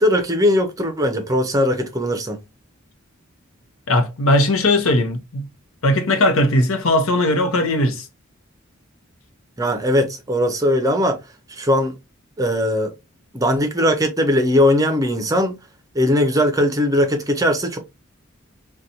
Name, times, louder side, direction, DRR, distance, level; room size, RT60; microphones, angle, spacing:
voice 1, 0.0-2.4 9.6-11.2 11.5-11.9 12.4-12.9 13.3-15.5 15.9-17.8, left 1 dB, 15° right, 0.5 m, -19 dB
voice 2, 3.9-5.5 5.8-8.1, left 1 dB, 75° left, 0.8 m, -18 dB
3.9 x 2.3 x 2.8 m
head